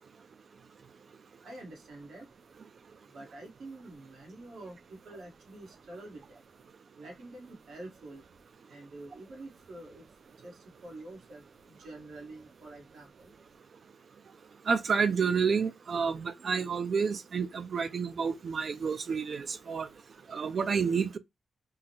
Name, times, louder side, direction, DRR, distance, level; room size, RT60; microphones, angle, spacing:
voice 1, 1.4-2.3 3.1-6.4 7.0-8.2 8.7-10.0 10.4-13.3, right 2 dB, 70° right, 1.3 m, -47 dB
voice 2, 14.7-19.9 20.3-21.2, right 5 dB, 45° right, 0.3 m, -29 dB
3.7 x 2.0 x 2.8 m
wide cardioid pair, 170°, 0 cm